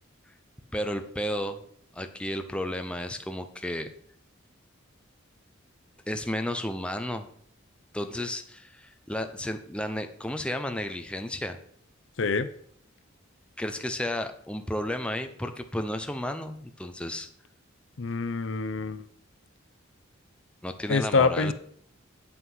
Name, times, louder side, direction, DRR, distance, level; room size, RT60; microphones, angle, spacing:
voice 1, 0.7-1.6 1.9-3.9 6.1-7.3 7.9-11.6 13.6-17.3 20.6-21.5, left 1 dB, 5° left, 7 dB, 0.6 m, -32 dB
voice 2, 12.2-12.5 18.0-19.0 20.9-21.5, left 4 dB, 65° left, 12 dB, 0.6 m, -25 dB
8.6 x 7.7 x 5.5 m, 0.63 s
head